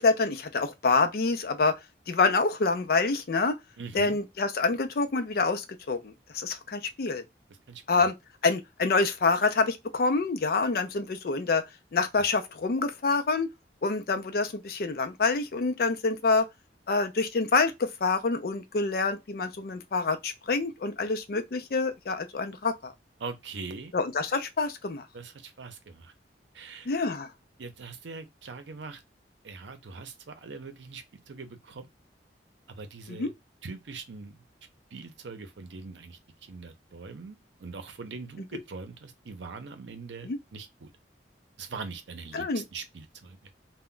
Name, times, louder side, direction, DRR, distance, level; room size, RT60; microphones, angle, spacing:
voice 1, 0.0-1.7 2.1-3.6 3.9-7.2 7.9-8.1 8.4-11.6 11.9-13.5 13.8-16.5 16.9-22.9 23.9-25.0 26.9-27.3 33.1-33.3 40.2-40.4 42.3-42.6, left 4 dB, 55° left, 0.4 m, -26 dB
voice 2, 3.8-4.2 7.7-7.8 23.2-23.9 25.1-26.1 26.5-26.9 27.6-29.0 29.4-31.9 32.7-33.3 33.6-34.4 34.9-40.9 41.6-43.4, right 4 dB, 85° right, 0.6 m, -42 dB
2.2 x 2.1 x 3.6 m
head